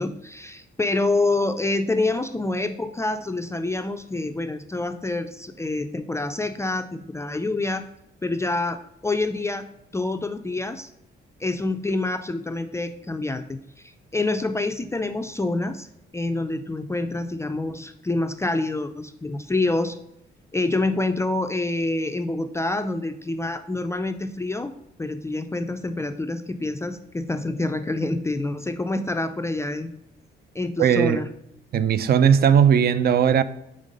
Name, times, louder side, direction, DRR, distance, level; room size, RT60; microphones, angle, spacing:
voice 1, 0.0-7.8 8.2-9.7 9.9-10.9 11.4-15.9 16.1-20.0 20.5-24.7 25.0-29.9 30.5-31.3, left 2 dB, 15° left, 0.3 m, -27 dB
voice 2, 30.8-31.2 31.7-33.4, right 8 dB, 50° right, 0.4 m, -18 dB
5.3 x 3.6 x 5.1 m
cardioid pair, 90°, 20 cm